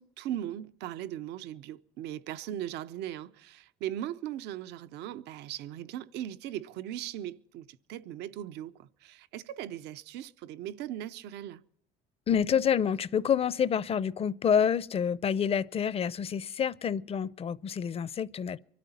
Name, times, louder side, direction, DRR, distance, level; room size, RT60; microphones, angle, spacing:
voice 1, 0.0-11.6, right 12 dB, 85° right, 0.6 m, -39 dB
voice 2, 12.3-18.6, left 7 dB, 35° left, 0.5 m, -28 dB
24.5 x 13.0 x 4.2 m
cardioid pair, 110°, 17 cm